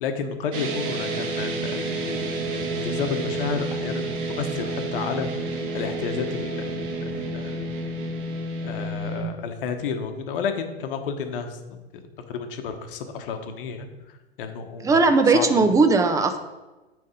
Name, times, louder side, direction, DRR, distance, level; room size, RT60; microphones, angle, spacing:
voice 1, 0.0-4.1 4.4-5.3 5.7-7.7 8.6-11.8 12.3-13.9 14.4-15.0 15.3-15.5, left 6 dB, 55° left, 7 dB, 1.1 m, -31 dB
sound 1, 0.5-9.2, right 2 dB, 50° right, 1.4 m, -30 dB
voice 2, 14.8-16.4, right 3 dB, 10° right, 8 dB, 0.5 m, -18 dB
9.1 x 3.5 x 5.0 m, 1.1 s
figure-of-eight pair, 100°, 33 cm